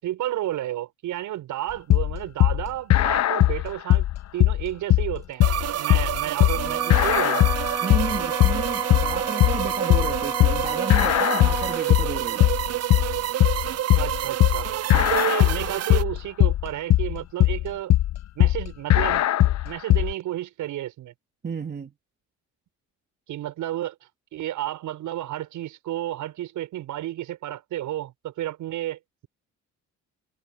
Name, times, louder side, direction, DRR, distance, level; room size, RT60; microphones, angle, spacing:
voice 1, 0.0-5.5 5.8-7.6 13.9-17.9 18.4-19.2 19.6-21.1 23.3-24.0 24.3-29.3, right 13 dB, 85° right, 7.4 m, -31 dB
sound 1, 1.9-20.1, left 14 dB, 65° left, 0.8 m, -20 dB
sound 2, 5.4-16.0, right 12 dB, 55° right, 0.7 m, -28 dB
Wind instrument woodwind instrument, 6.5-11.9, right 2 dB, 10° right, 1.5 m, -33 dB
voice 2, 7.8-12.5 14.9-15.0 21.4-21.9, right 5 dB, 35° right, 2.6 m, -32 dB
cardioid pair, 90°, 30 cm